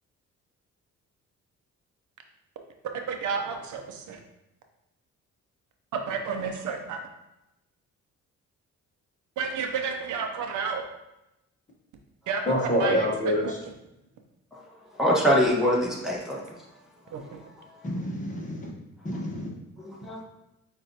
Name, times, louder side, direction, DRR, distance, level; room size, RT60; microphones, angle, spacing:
voice 1, 3.1-4.2 5.9-7.0 9.4-10.8 12.3-13.5 17.1-17.4, right 5 dB, 75° right, 4 dB, 0.7 m, -31 dB
voice 2, 12.5-13.4 17.8-18.7 19.0-19.5, equal, 25° left, -1 dB, 1.0 m, -27 dB
voice 3, 15.0-16.4 19.8-20.2, equal, ahead, -4 dB, 1.2 m, -23 dB
7.5 x 2.5 x 2.7 m, 0.91 s
cardioid pair, 90°, 30 cm